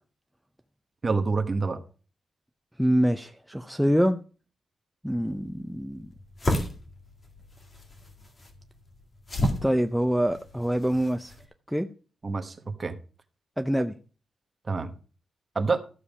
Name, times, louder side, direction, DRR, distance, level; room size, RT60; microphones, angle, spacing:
voice 1, 1.0-1.8 12.2-13.0 14.7-14.9 15.5-15.8, right 4 dB, 25° right, 1.2 m, -27 dB
voice 2, 2.8-4.2 5.0-6.1 9.6-11.3 11.7-11.9 13.6-14.0, equal, ahead, 0.5 m, -25 dB
sound 1, 5.1-11.4, left 1 dB, 30° left, 2.2 m, -33 dB
13.5 x 7.1 x 4.9 m
wide cardioid pair, 150°, 0 cm